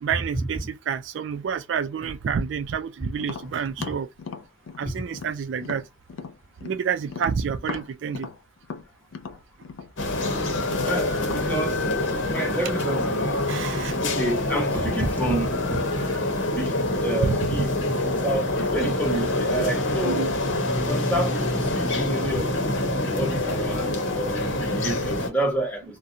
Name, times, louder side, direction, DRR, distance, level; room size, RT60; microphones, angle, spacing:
voice 1, 0.0-4.1 4.8-5.8 6.6-8.3 13.5-13.9 17.2-17.6 20.0-20.5, right 6 dB, 70° right, 0.3 m, -28 dB
Tap, 3.2-6.8 7.1-11.5, left 5 dB, 85° left, 0.4 m, -38 dB
sound 1, 10.0-25.3, left 2 dB, 70° left, 0.8 m, -26 dB
voice 2, 10.8-13.4 14.0-15.8 16.3-17.7 18.2-20.3 20.9-22.5 23.1-26.0, right 1 dB, 10° left, 1.2 m, -29 dB
2.5 x 2.2 x 2.7 m
head